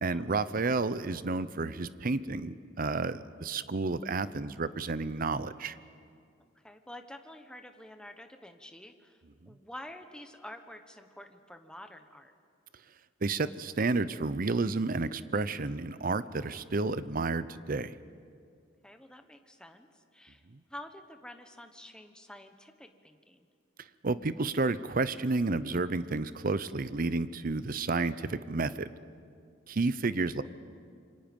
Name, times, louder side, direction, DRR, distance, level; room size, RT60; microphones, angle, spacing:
voice 1, 0.0-5.8 13.2-17.9 20.5-20.6 24.0-28.9 29.7-30.4, right 3 dB, 45° right, 15 dB, 0.7 m, -31 dB
voice 2, 6.6-9.2 9.5-12.3 18.8-20.4 20.7-23.5, left 1 dB, 5° left, 6 dB, 1.1 m, -48 dB
27.5 x 24.5 x 5.4 m, 2.3 s
head